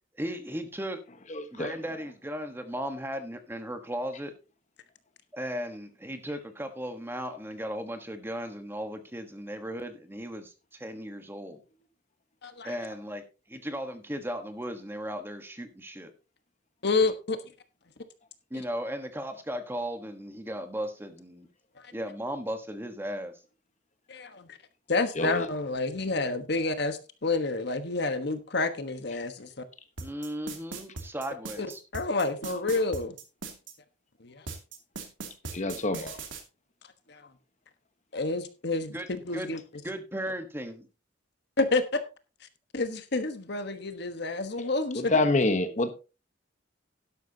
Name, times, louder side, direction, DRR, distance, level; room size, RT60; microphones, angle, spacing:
voice 1, 0.2-1.0 1.5-4.3 5.3-11.6 12.6-13.2 13.5-16.1 18.5-21.5 21.9-23.3 30.0-31.8 38.9-39.1 39.3-39.5 39.8-40.9, equal, 10° right, 7 dB, 1.3 m, -36 dB
voice 2, 1.3-1.8 25.2-25.5 35.5-36.2 44.9-45.9, left 2 dB, 40° left, 9 dB, 1.1 m, -26 dB
voice 3, 12.4-12.7 16.8-17.4 18.5-18.6 21.8-21.9 24.1-24.6 24.9-29.5 31.6-31.7 31.9-33.2 34.2-34.4 37.1-37.3 38.1-39.0 39.2-39.6 41.6-42.0 42.7-45.2, left 3 dB, 60° left, 9 dB, 1.3 m, -29 dB
sound 1, 30.0-33.7 34.5-36.4, right 4 dB, 80° right, 2.7 m, -39 dB
12.0 x 11.5 x 2.8 m, 0.31 s
head